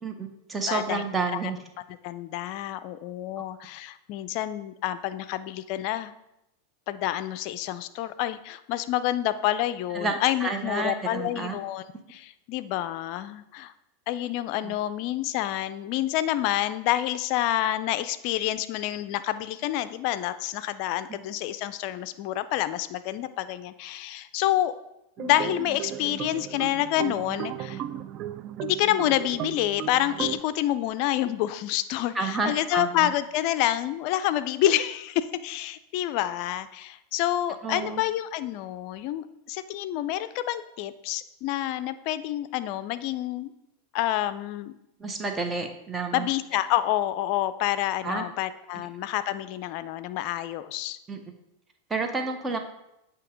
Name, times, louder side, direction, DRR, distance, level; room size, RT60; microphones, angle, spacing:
voice 1, 0.0-1.6 9.9-11.6 14.6-14.7 32.1-33.1 37.6-38.0 45.0-46.3 48.0-48.2 48.7-48.9 51.1-51.2 51.9-52.6, right 4 dB, 20° right, 5 dB, 0.8 m, -30 dB
voice 2, 0.7-1.0 2.0-6.1 6.9-11.8 12.1-13.7 14.1-24.7 25.2-27.8 28.6-43.5 43.9-44.7 46.1-51.0, left 13 dB, 55° left, 12 dB, 0.4 m, -28 dB
sound 1, 25.2-30.4, right 11 dB, 45° right, 0.3 m, -35 dB
8.4 x 2.8 x 5.0 m, 0.86 s
hypercardioid pair, 100°, 0 cm